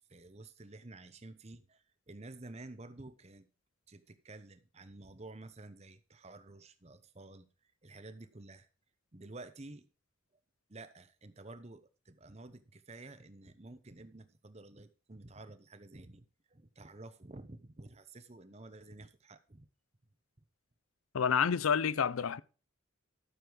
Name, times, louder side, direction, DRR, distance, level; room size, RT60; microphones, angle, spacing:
voice 1, 0.1-3.5 3.9-7.5 7.8-8.7 9.1-9.9 10.7-16.2 16.5-19.7, right 2 dB, 30° right, 0.9 m, -51 dB
voice 2, 21.1-22.4, left 7 dB, 85° left, 0.5 m, -29 dB
12.5 x 6.9 x 4.7 m
head